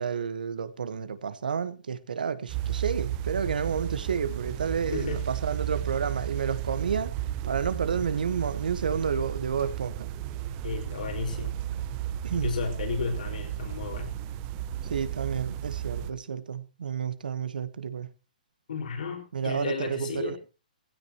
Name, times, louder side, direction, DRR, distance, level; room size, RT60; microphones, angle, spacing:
voice 1, 0.0-7.1 7.4-10.1 12.2-12.5 14.9-18.1 19.3-20.4, right 6 dB, 85° right, 1.4 m, -30 dB
sound 1, 2.5-16.1, right 12 dB, 25° right, 0.8 m, -33 dB
voice 2, 4.9-5.2 10.6-11.6 12.3-14.1 18.7-20.4, left 5 dB, 75° left, 5.1 m, -33 dB
18.5 x 16.0 x 3.0 m
hypercardioid pair, 160°, 5 cm